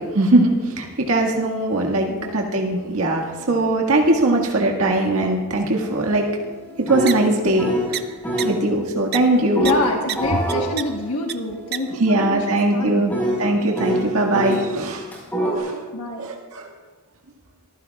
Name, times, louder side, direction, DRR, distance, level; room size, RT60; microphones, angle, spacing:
voice 1, 0.0-6.4 6.8-8.0 8.4-9.6 12.0-13.1 13.4-15.1 15.6-15.8 16.2-16.7, right 2 dB, 75° right, 0 dB, 1.7 m, -20 dB
voice 2, 2.0-2.4 9.6-13.1 15.9-16.2, left 2 dB, 75° left, 0 dB, 1.2 m, -27 dB
sound 1, 5.8-7.9 8.2-8.6 9.5-14.6 15.1-15.6, right 1 dB, 10° left, 4.4 m, -26 dB
sound 2, 7.1-7.2 7.9-8.0 8.4-8.5 9.1-9.2 9.6-9.7 10.1-10.2 10.5-10.8 11.3-11.4 11.7-11.8, right 11 dB, 45° right, 0.6 m, -25 dB
24.0 x 15.0 x 2.3 m, 1.3 s
head